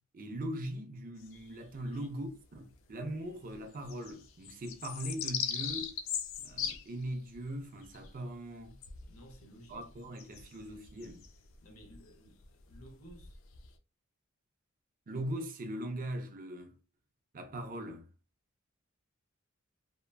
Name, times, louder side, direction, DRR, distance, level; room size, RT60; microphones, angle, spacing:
voice 1, 0.1-6.0 6.4-8.8 9.7-11.2 15.1-16.8 17.3-18.1, right 1 dB, 40° right, 0.5 m, -40 dB
sound 1, 1.2-2.3 2.7-2.8 3.0-13.7, left 8 dB, 65° left, 0.4 m, -41 dB
voice 2, 1.8-2.2 9.1-10.0 11.6-13.4, right 1 dB, 90° left, 0.8 m, -55 dB
2.8 x 2.2 x 2.2 m
head